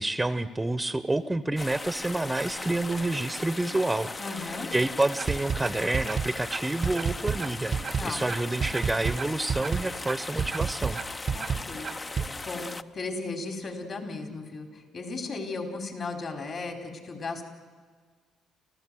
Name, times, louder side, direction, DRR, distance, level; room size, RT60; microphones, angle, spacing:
voice 1, 0.0-11.0, right 2 dB, 15° right, 14 dB, 0.9 m, -29 dB
sound 1, 1.6-12.8, left 3 dB, 30° left, 0.8 m, -38 dB
voice 2, 4.2-4.7 7.9-8.3 11.3-11.9 12.1-17.4, left 3 dB, 50° left, 4 dB, 4.4 m, -36 dB
sound 2, 5.2-12.3, right 6 dB, 50° right, 0.9 m, -30 dB
28.5 x 15.0 x 7.8 m, 1.5 s
supercardioid pair, 60°, 0 cm